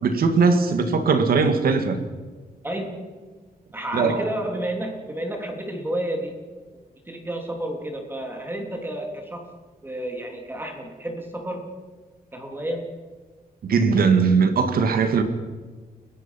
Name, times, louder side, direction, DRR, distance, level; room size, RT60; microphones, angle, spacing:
voice 1, 0.0-2.0 3.9-4.3 13.6-15.2, right 5 dB, 70° right, 8 dB, 2.1 m, -19 dB
voice 2, 2.6-3.1 3.7-6.4 7.1-9.5 9.8-11.7 12.3-12.9, right 1 dB, 15° right, 2 dB, 3.2 m, -30 dB
30.0 x 16.0 x 5.9 m, 1.4 s
wide cardioid pair, 150°, 16 cm